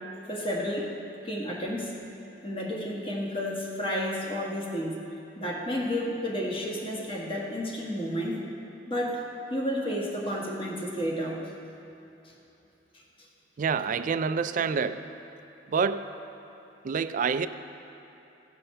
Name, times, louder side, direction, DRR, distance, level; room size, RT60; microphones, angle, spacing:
voice 1, 0.3-0.9 1.2-1.9 2.4-5.0 5.4-8.4 8.9-9.2 9.5-11.4, equal, 30° left, -3 dB, 1.5 m, -31 dB
voice 2, 13.6-15.1 15.7-16.1 16.8-17.5, right 5 dB, 45° right, 12 dB, 0.3 m, -27 dB
16.5 x 5.5 x 5.5 m, 3.0 s
head